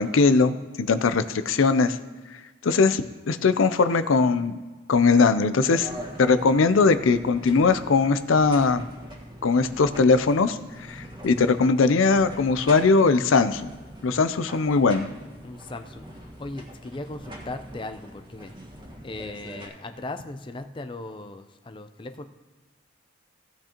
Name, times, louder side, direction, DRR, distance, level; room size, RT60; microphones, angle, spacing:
voice 1, 0.0-2.0 2.6-4.6 4.9-5.9 6.2-8.8 9.4-10.6 10.9-13.7 14.0-15.1, left 4 dB, 85° left, 12 dB, 0.5 m, -20 dB
sound 1, 5.7-19.7, equal, 25° right, 1.5 m, -43 dB
voice 2, 15.4-18.5 19.0-22.2, left 2 dB, 25° left, 8 dB, 0.5 m, -38 dB
16.0 x 8.8 x 3.0 m, 1.3 s
head